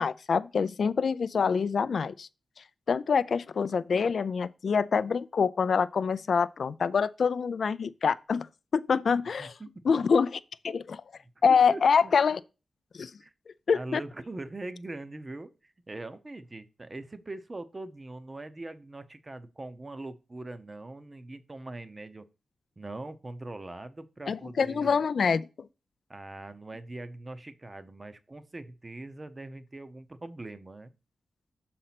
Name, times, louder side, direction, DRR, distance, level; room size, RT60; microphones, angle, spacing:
voice 1, 0.0-2.3 2.9-8.5 8.7-9.5 9.9-10.4 10.6-11.0 11.4-12.4 13.0-13.1 13.7-14.0 24.3-25.7, left 6 dB, 60° left, 0.3 m, -25 dB
voice 2, 9.4-9.9 11.2-12.1 13.2-13.3 13.7-22.3 22.8-25.0 26.1-30.9, right 2 dB, 25° right, 0.7 m, -42 dB
6.5 x 4.2 x 5.9 m
wide cardioid pair, 120°, 0 cm